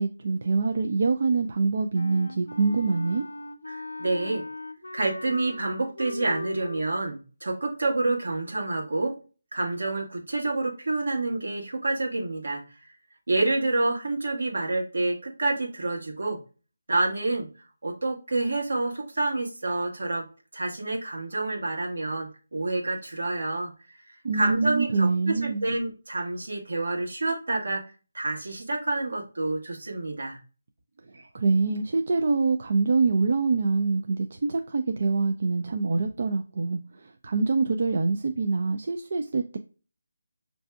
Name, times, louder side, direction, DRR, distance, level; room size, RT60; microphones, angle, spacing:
voice 1, 0.0-3.2 24.2-25.6 31.3-39.6, right 4 dB, 55° right, 0.3 m, -25 dB
Wind instrument woodwind instrument, 1.9-6.8, left 2 dB, 85° left, 0.4 m, -38 dB
voice 2, 3.7-4.4 4.9-9.1 9.5-12.6 13.3-16.4 16.9-17.5 17.8-20.3 20.5-23.7 24.3-27.8 28.1-30.4 31.1-31.2, right 2 dB, 75° right, 1.2 m, -28 dB
5.6 x 2.6 x 2.2 m
figure-of-eight pair, 160°, 0 cm